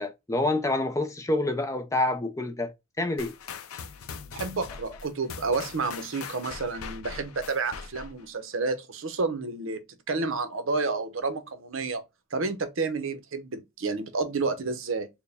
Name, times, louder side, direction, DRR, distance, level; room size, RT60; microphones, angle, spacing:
voice 1, 0.0-3.3, left 2 dB, 15° left, 0.4 m, -27 dB
sound 1, 3.2-8.3, left 6 dB, 80° left, 0.5 m, -41 dB
voice 2, 4.3-12.0 12.3-15.1, right 3 dB, 65° right, 0.7 m, -30 dB
4.5 x 2.1 x 3.3 m
head